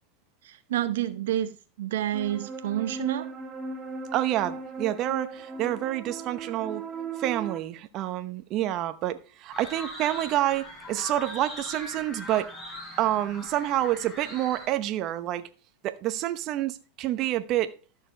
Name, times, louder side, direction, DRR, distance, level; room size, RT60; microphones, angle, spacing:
voice 1, 0.4-1.5 1.8-3.3, right 12 dB, 75° right, 0.7 m, -29 dB
sound 1, 2.1-7.6, right 3 dB, 15° right, 2.1 m, -37 dB
voice 2, 4.1-6.8 7.2-12.5 13.0-15.4 15.8-17.7, right 13 dB, 45° right, 0.8 m, -28 dB
sound 2, 9.5-14.7, left 1 dB, 20° left, 4.6 m, -41 dB
12.5 x 6.6 x 3.3 m
hypercardioid pair, 115°, 0 cm